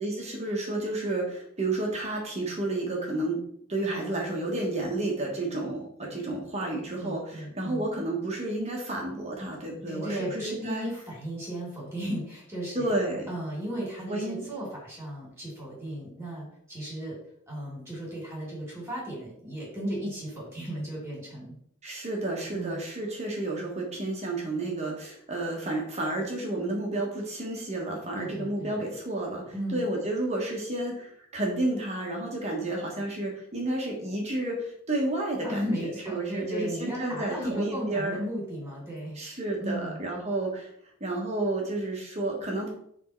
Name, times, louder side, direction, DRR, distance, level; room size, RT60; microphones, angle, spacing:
voice 1, 0.0-3.4 3.7-10.9 12.7-13.3 14.1-14.4 21.8-38.2 39.2-40.7 41.0-42.7, right 2 dB, 30° right, -1 dB, 1.3 m, -31 dB
voice 2, 7.0-7.9 9.9-12.9 13.3-17.2 17.5-21.5 22.5-22.8 28.1-28.7 29.5-29.8 35.4-40.0, right 1 dB, 10° right, -3 dB, 2.7 m, -35 dB
6.2 x 3.6 x 4.5 m, 0.65 s
head